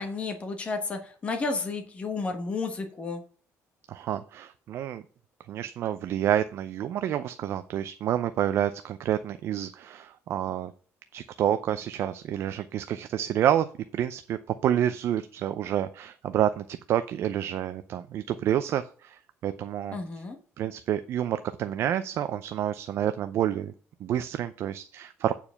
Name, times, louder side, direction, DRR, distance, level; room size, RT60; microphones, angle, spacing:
voice 1, 0.0-3.2 19.9-20.4, left 4 dB, 20° left, 5 dB, 1.3 m, -32 dB
voice 2, 3.9-5.0 5.5-10.7 11.1-13.7 13.9-20.0 20.6-23.7 24.0-25.3, right 10 dB, 50° right, 10 dB, 0.5 m, -28 dB
8.7 x 4.7 x 5.8 m, 0.43 s
cardioid pair, 175°, 6 cm